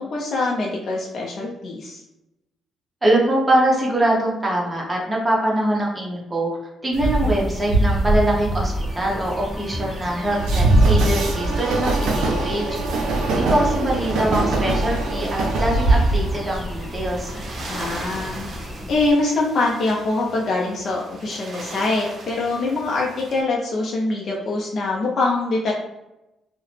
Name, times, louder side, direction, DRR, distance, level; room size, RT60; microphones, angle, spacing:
voice 1, 0.0-2.0 7.2-7.3 17.7-25.7, left 2 dB, 55° left, -3 dB, 0.4 m, -24 dB
voice 2, 3.0-6.5 6.8-12.6 13.3-17.3, right 1 dB, 20° right, -3 dB, 1.0 m, -23 dB
sound 1, 6.9-19.1, left 1 dB, 5° left, 0.5 m, -35 dB
Train, 7.0-17.4, right 2 dB, 80° right, 0.5 m, -21 dB
sound 2, 13.9-23.4, right 2 dB, 50° right, 0.7 m, -39 dB
2.7 x 2.0 x 3.2 m, 0.94 s
cardioid pair, 90°, 0 cm